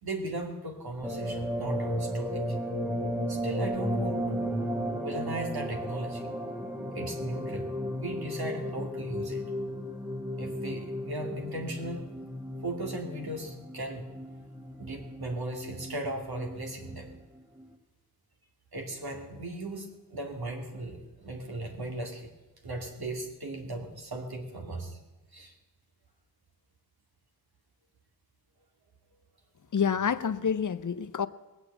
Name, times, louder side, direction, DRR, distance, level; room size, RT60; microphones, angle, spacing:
voice 1, 0.0-2.6 3.3-4.5 5.0-6.3 6.9-9.4 10.4-12.0 12.6-14.1 14.8-17.1 18.7-22.3 22.6-25.0 25.3-25.5, right 1 dB, 90° right, 2.5 m, -37 dB
sound 1, 1.0-17.1 17.6-17.7, equal, 5° right, 1.4 m, -34 dB
voice 2, 29.7-31.3, left 7 dB, 55° left, 0.7 m, -28 dB
20.0 x 8.2 x 8.3 m
wide cardioid pair, 90°, 36 cm